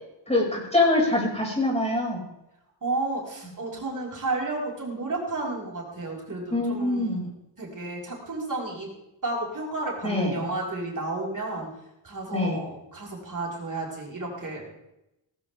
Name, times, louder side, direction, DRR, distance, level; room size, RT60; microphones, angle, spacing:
voice 1, 0.3-2.2 6.5-7.2 10.0-10.4 12.3-12.6, left 2 dB, 15° left, -3 dB, 6.2 m, -24 dB
voice 2, 2.8-7.3 7.6-8.9 9.2-11.7 12.0-14.7, right 2 dB, 45° right, -2 dB, 5.7 m, -32 dB
18.5 x 15.5 x 3.7 m, 0.89 s
wide cardioid pair, 105°, 45 cm